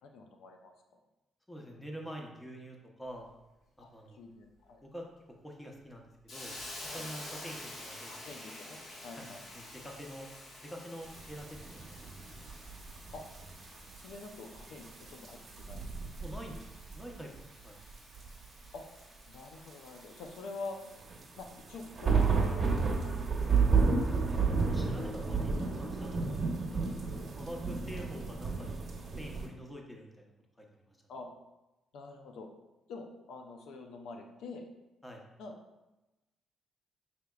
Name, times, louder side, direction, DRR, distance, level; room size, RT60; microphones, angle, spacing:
voice 1, 0.0-0.7 3.8-4.8 6.9-7.0 8.1-9.4 13.1-13.2 14.0-15.8 18.7-18.9 19.3-20.8 21.4-22.9 31.1-31.3 31.9-32.5 32.9-34.7 35.4-35.5, left 3 dB, 80° left, 4 dB, 0.4 m, -46 dB
voice 2, 1.5-3.2 3.8-4.3 4.8-5.0 5.4-6.5 6.8-8.3 9.2-10.3 10.6-11.8 12.1-12.2 16.2-17.8 23.9-24.4 24.7-25.5 25.8-26.4 26.7-26.8 27.1-28.7 29.0-30.3 30.6-31.0 35.0-35.2, equal, 10° left, 1 dB, 0.8 m, -46 dB
Hiss, 6.3-21.1, left 1 dB, 60° left, 1.3 m, -50 dB
sound 1, 11.0-17.4 17.7-19.0 19.7-29.5, right 4 dB, 40° right, 1.0 m, -32 dB
5.8 x 3.4 x 2.3 m, 0.99 s
cardioid pair, 90°, 0 cm